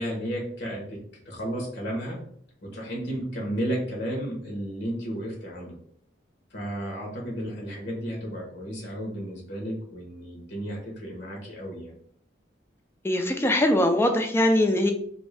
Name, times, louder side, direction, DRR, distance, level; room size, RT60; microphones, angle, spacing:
voice 1, 0.0-2.2 2.6-5.8 6.5-11.9, equal, 65° left, -2 dB, 1.0 m, -33 dB
voice 2, 13.0-14.9, left 1 dB, 15° left, 5 dB, 0.4 m, -21 dB
3.0 x 2.6 x 3.3 m, 0.62 s
head